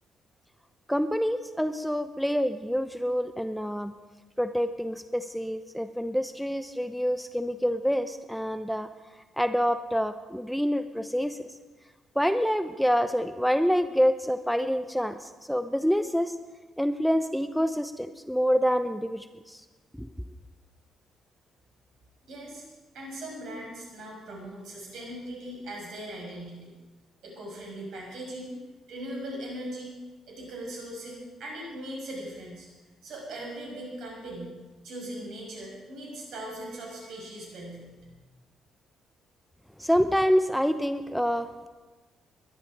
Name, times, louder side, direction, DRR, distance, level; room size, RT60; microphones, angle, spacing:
voice 1, 0.9-3.9 4.4-8.9 9.4-11.5 12.2-16.4 16.8-19.6 20.0-20.1 39.8-41.7, equal, ahead, 10 dB, 0.9 m, -27 dB
voice 2, 22.3-22.6 22.9-26.7 27.2-28.5 28.9-30.0 30.3-32.7 33.0-34.5 34.8-38.2, right 1 dB, 65° right, -1 dB, 6.3 m, -39 dB
21.0 x 12.0 x 5.0 m, 1.3 s
hypercardioid pair, 45°, 0 cm